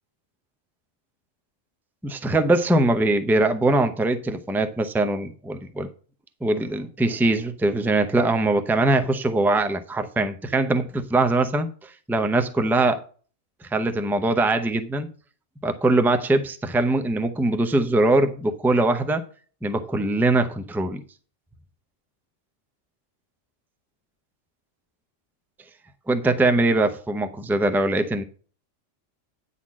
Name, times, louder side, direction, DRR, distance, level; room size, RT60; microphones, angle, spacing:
voice 1, 2.0-5.9 6.4-13.0 13.7-15.1 15.6-19.2 19.6-21.0 26.1-28.2, right 2 dB, 5° right, 0.4 m, -22 dB
9.5 x 4.2 x 7.3 m
omnidirectional pair, 1.3 m